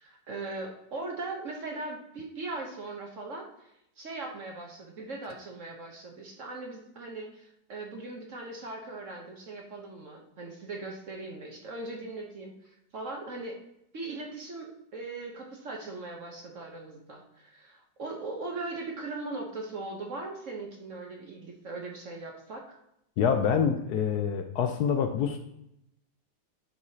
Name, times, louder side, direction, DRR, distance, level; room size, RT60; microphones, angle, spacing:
voice 1, 0.0-13.6 13.9-22.8, right 2 dB, 50° right, 1 dB, 1.1 m, -39 dB
voice 2, 23.2-25.4, left 7 dB, 70° left, 6 dB, 1.0 m, -26 dB
11.0 x 4.8 x 2.8 m, 0.81 s
omnidirectional pair, 2.0 m